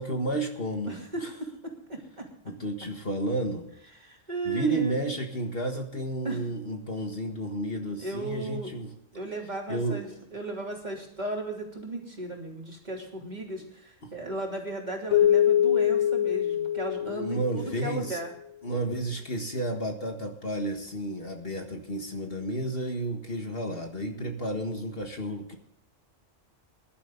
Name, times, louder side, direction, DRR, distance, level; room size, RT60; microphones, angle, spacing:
voice 1, 0.0-1.3 2.4-3.7 4.4-8.9 9.7-10.0 14.0-14.1 17.0-18.2 18.6-25.6, right 1 dB, 50° left, 3 dB, 1.8 m, -32 dB
voice 2, 0.9-2.3 4.0-5.1 6.2-6.4 8.0-8.7 9.1-18.3, right 2 dB, 35° right, 0 dB, 3.3 m, -36 dB
Keyboard (musical), 15.1-18.1, left 10 dB, 70° left, 1.1 m, -24 dB
20.0 x 11.5 x 3.9 m, 0.72 s
omnidirectional pair, 1.3 m